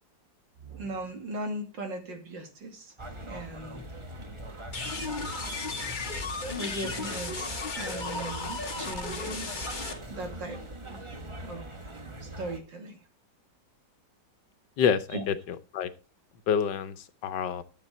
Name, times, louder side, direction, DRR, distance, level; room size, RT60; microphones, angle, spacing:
voice 1, 0.6-2.9 3.3-3.9 6.5-9.6 10.1-10.6 10.9-11.9 12.2-13.0 15.1-15.2, right 2 dB, 80° right, 4 dB, 3.1 m, -38 dB
sound 1, 3.0-12.6, right 1 dB, 20° right, 1.1 m, -42 dB
sound 2, 4.7-9.9, left 3 dB, 30° left, 1.2 m, -35 dB
voice 2, 14.8-15.9 16.5-17.6, left 7 dB, 75° left, 11 dB, 1.6 m, -28 dB
11.5 x 7.9 x 4.4 m, 0.33 s
omnidirectional pair, 2.0 m